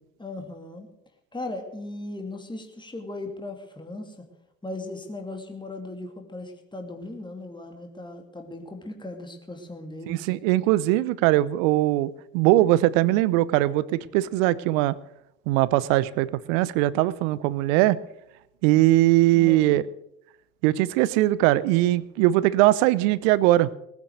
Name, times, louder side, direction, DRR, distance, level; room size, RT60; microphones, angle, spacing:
voice 1, 0.2-0.9 1.3-4.2 4.6-10.3 19.3-19.6, left 2 dB, 10° left, 4 dB, 2.7 m, -37 dB
voice 2, 10.1-14.9 15.5-18.0 18.6-19.9 20.6-23.7, right 16 dB, 70° right, 19 dB, 0.8 m, -21 dB
19.5 x 9.7 x 6.6 m, 0.81 s
hypercardioid pair, 60°, 41 cm